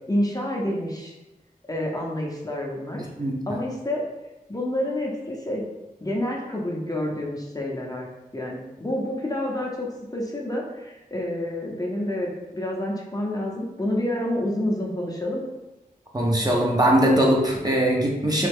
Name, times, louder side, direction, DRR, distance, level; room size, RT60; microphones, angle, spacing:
voice 1, 0.1-1.1 1.7-3.1 3.5-4.0 4.5-5.6 6.0-8.1 8.3-15.4, left 1 dB, 25° left, -2 dB, 0.7 m, -28 dB
voice 2, 3.2-3.6 16.1-18.5, right 1 dB, 25° right, -2 dB, 0.6 m, -21 dB
3.1 x 2.3 x 3.5 m, 1.0 s
wide cardioid pair, 45°, 16 cm